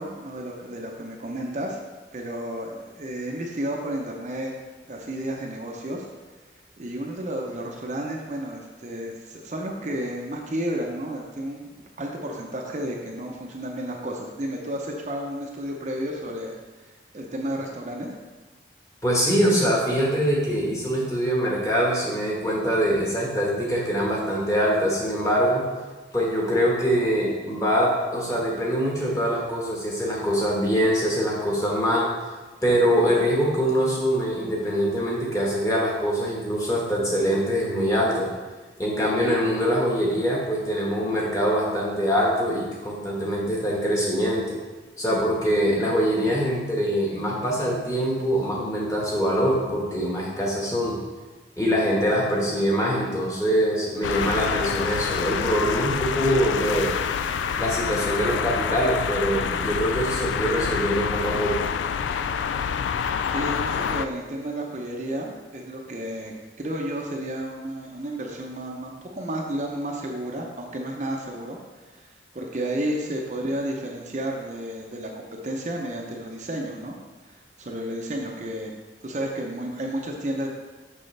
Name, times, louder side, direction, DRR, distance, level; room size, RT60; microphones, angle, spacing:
voice 1, 0.0-1.8 2.1-4.5 4.9-6.1 6.8-16.5 16.8-18.1 63.3-71.6 71.9-77.0 77.2-77.3 77.6-78.8 79.0-80.5, right 1 dB, 40° right, 0 dB, 0.6 m, -32 dB
voice 2, 19.0-25.6 26.1-32.1 32.6-38.3 38.8-44.6 45.0-51.0 51.6-56.9 57.6-61.7, equal, 20° left, -3 dB, 1.3 m, -23 dB
sound 1, 54.0-64.1, left 7 dB, 90° left, 0.3 m, -27 dB
6.4 x 6.2 x 3.3 m, 1.3 s
head